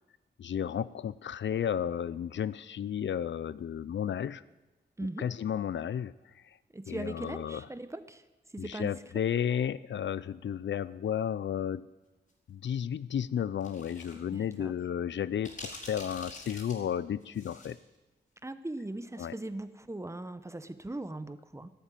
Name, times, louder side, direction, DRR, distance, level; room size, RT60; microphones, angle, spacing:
voice 1, 0.4-4.4 5.2-6.1 6.9-7.7 8.6-11.9 12.5-17.8 19.2-19.3, left 9 dB, 85° left, 18 dB, 0.5 m, -33 dB
voice 2, 6.7-8.2 8.5-9.0 14.3-14.7 18.4-21.7, right 2 dB, 15° right, 12 dB, 0.9 m, -39 dB
sound 1, 13.6-14.1 14.5-14.6 15.4-17.8, left 2 dB, 45° left, 4.7 m, -46 dB
13.5 x 11.5 x 9.1 m, 1.1 s
wide cardioid pair, 110°, 19 cm